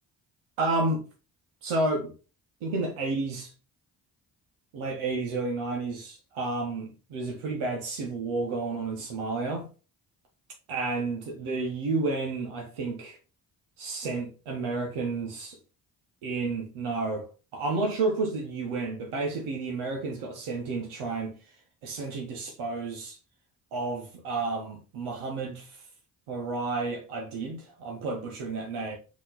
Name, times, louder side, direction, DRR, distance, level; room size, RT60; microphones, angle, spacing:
voice 1, 0.6-1.0 1.6-2.1 2.6-3.5 4.7-9.7 10.7-13.2 13.8-15.5 16.2-17.3 17.5-21.4 21.8-23.2 23.7-25.8 26.3-29.0, right 3 dB, 75° right, 1.1 m, -31 dB
4.1 x 3.0 x 4.0 m
hypercardioid pair, 40°, 50 cm